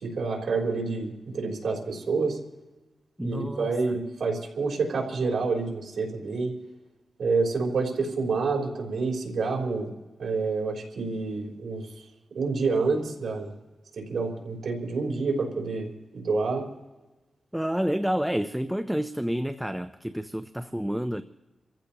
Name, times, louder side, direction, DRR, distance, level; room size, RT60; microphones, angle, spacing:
voice 1, 0.0-2.4 3.2-6.5 7.2-9.9 10.2-11.9 12.3-13.5 13.9-16.6, right 4 dB, 80° right, 3.6 m, -28 dB
voice 2, 3.2-3.7 17.5-21.2, equal, 5° right, 0.5 m, -29 dB
29.0 x 15.0 x 2.9 m
wide cardioid pair, 135°, 0 cm